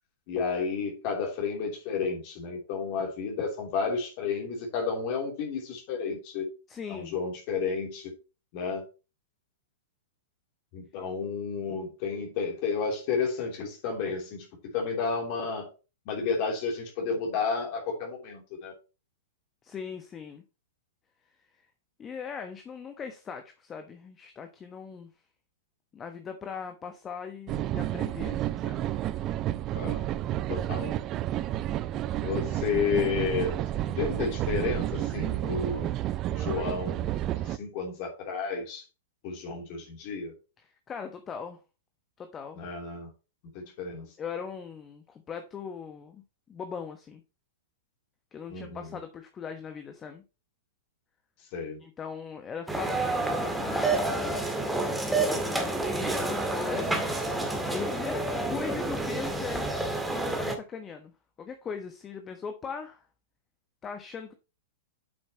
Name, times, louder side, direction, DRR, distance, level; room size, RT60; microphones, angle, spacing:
voice 1, 0.3-6.4 6.9-8.1 8.5-8.8 10.7-14.4 14.7-15.7 16.1-18.7 29.7-30.0 30.5-30.9 31.9-35.9 36.3-37.1 37.4-38.8 39.2-40.3 42.6-43.1 43.5-44.1 48.5-48.8 51.5-51.8, left 5 dB, 45° left, 3.2 m, -31 dB
voice 2, 6.7-7.2 19.6-20.4 21.5-21.7 22.0-25.1 25.9-28.9 40.6-41.6 42.2-42.6 44.2-46.2 46.5-47.2 48.3-50.2 51.8-54.9 55.2-57.2 57.7-59.7 60.3-61.1 61.4-63.1 63.8-64.3, left 6 dB, 20° left, 1.2 m, -40 dB
sound 1, 27.5-37.6, right 13 dB, 30° right, 0.5 m, -31 dB
sound 2, 52.7-60.6, right 2 dB, 5° right, 1.9 m, -29 dB
8.9 x 7.8 x 3.0 m
figure-of-eight pair, 105°, 0 cm